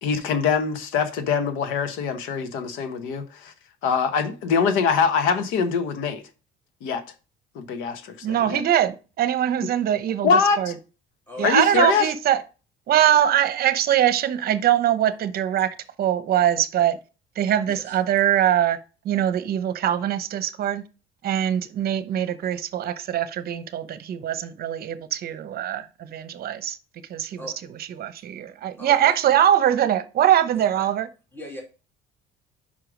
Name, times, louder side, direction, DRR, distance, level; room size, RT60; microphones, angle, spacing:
voice 1, 0.0-3.5 3.8-6.2 6.8-7.0 7.5-8.6 10.2-10.7 11.4-12.1, left 6 dB, 80° left, 1.1 m, -23 dB
voice 2, 8.2-10.7 11.4-12.4 12.9-17.0 17.4-18.8 19.0-20.8 21.2-26.8 27.1-27.4 28.0-31.1, right 11 dB, 50° right, 0.8 m, -22 dB
voice 3, 11.3-11.8 15.5-15.7 17.7-18.0 27.4-27.6 28.8-29.2 30.5-30.9 31.3-31.6, left 1 dB, 10° left, 2.6 m, -39 dB
5.5 x 4.9 x 5.0 m
cardioid pair, 115°, 20 cm